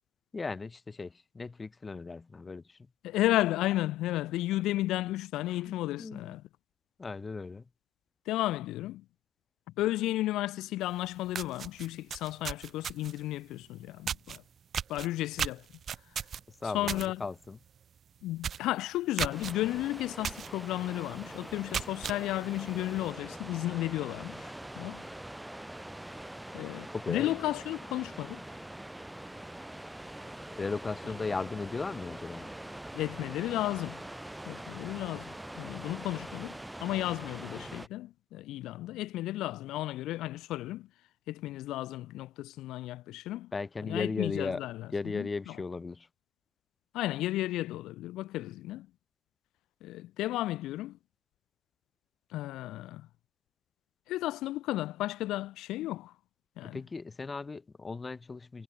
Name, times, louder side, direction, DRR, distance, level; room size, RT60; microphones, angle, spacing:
voice 1, 0.3-2.8 5.5-6.4 7.0-7.6 16.5-17.6 26.9-27.4 30.6-32.5 43.5-44.6 44.9-46.1 56.6-58.6, left 4 dB, 20° left, 4.0 m, -37 dB
voice 2, 3.0-6.4 8.3-9.0 9.8-14.4 14.9-15.7 16.6-17.2 18.2-25.0 26.5-28.4 32.9-34.0 34.4-40.9 41.3-43.5 43.8-45.6 46.9-48.9 49.8-51.0 52.3-53.1 54.1-56.1 56.6-56.8, left 16 dB, 85° left, 2.1 m, -33 dB
sound 1, 10.9-11.0 11.3-13.2 14.1-14.4 14.7-17.1 17.4-17.7 18.0-18.1 18.4-18.7 19.2-19.5 20.2-20.5 20.9-21.0 21.5-22.2, right 8 dB, 40° right, 3.5 m, -35 dB
sound 2, 19.3-37.9, right 1 dB, 5° right, 4.6 m, -44 dB
cardioid pair, 150°, 0 cm